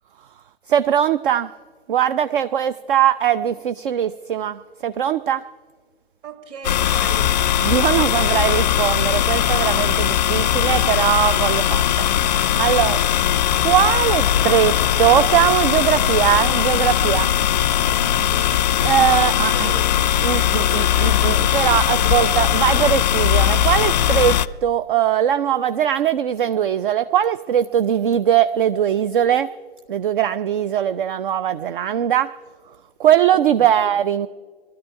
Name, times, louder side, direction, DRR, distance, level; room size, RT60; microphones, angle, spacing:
voice 1, 0.7-1.5 1.9-5.5 7.6-12.2 12.6-13.0 13.6-17.3 17.7-17.9 18.8-19.7 20.2-29.5 29.9-32.3 33.0-34.3, right 10 dB, 55° right, 13 dB, 0.5 m, -20 dB
voice 2, 6.2-7.3 7.9-8.4 12.1-12.6 17.8-18.8 19.2-21.6 22.0-22.2 33.3-33.9, right 3 dB, 30° right, 5 dB, 2.1 m, -38 dB
sound 1, 6.6-24.5, left 11 dB, 40° left, 0.4 m, -19 dB
20.0 x 12.5 x 4.7 m, 1.5 s
figure-of-eight pair, 115°, 32 cm